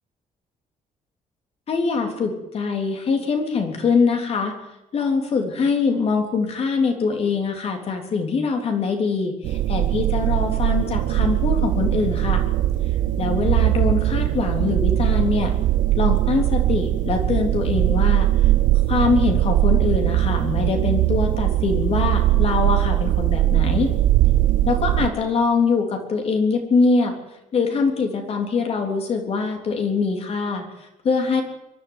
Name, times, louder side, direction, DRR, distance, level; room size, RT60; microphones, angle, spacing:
voice 1, 1.7-4.5 4.9-12.5 13.2-15.5 16.0-18.3 18.9-23.9 24.7-27.2 27.5-30.6 31.0-31.4, left 4 dB, 50° left, 4 dB, 3.5 m, -23 dB
sound 1, 9.4-25.1, right 14 dB, 80° right, 1.2 m, -20 dB
23.5 x 11.5 x 9.7 m, 0.94 s
cardioid pair, 150°, 14 cm